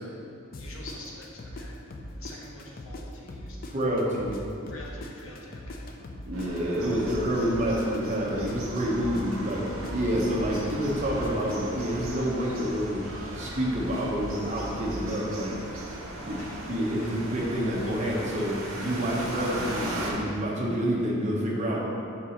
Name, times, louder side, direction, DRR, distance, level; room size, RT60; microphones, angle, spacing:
sound 1, 0.5-3.0 3.3-7.2 7.4-11.6, left 1 dB, 40° left, 0.4 m, -40 dB
voice 1, 0.6-1.8 2.1-3.6 4.7-5.9 16.4-16.7 17.0-17.1, left 2 dB, 70° left, -3 dB, 1.0 m, -46 dB
voice 2, 3.6-4.4 6.2-13.1 13.3-15.6 16.2-16.4 16.7-21.8, equal, 35° right, -4 dB, 0.9 m, -28 dB
sound 2, 6.3-20.1, right 1 dB, 65° right, 1.0 m, -37 dB
4.6 x 3.9 x 5.6 m, 2.8 s
head